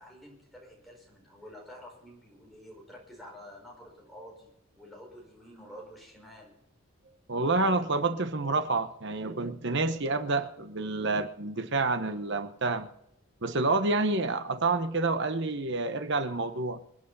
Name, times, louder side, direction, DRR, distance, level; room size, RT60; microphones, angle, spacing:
voice 1, 0.0-6.6, equal, ahead, -2 dB, 5.2 m, -49 dB
voice 2, 7.3-12.9 13.4-16.8, right 3 dB, 50° right, 9 dB, 1.1 m, -28 dB
26.5 x 9.4 x 4.1 m, 0.78 s
head